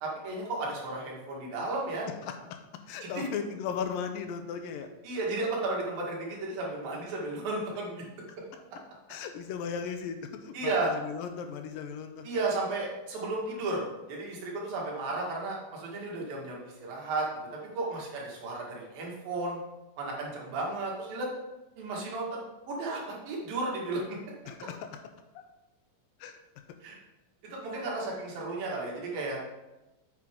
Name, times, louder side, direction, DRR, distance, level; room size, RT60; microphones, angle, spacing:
voice 1, 0.0-2.1 3.0-3.3 5.0-8.0 10.5-10.9 12.2-17.3 17.7-19.6 20.0-21.3 21.8-22.4 22.7-24.2 26.8-27.0 27.5-29.4, right 2 dB, 85° right, -3 dB, 3.7 m, -33 dB
voice 2, 2.2-2.6 2.9-4.9 9.1-12.3 24.5-24.8 25.4-25.5 26.2-26.4, left 7 dB, 85° left, 7 dB, 2.5 m, -36 dB
8.5 x 7.7 x 3.7 m, 1.0 s
omnidirectional pair, 4.0 m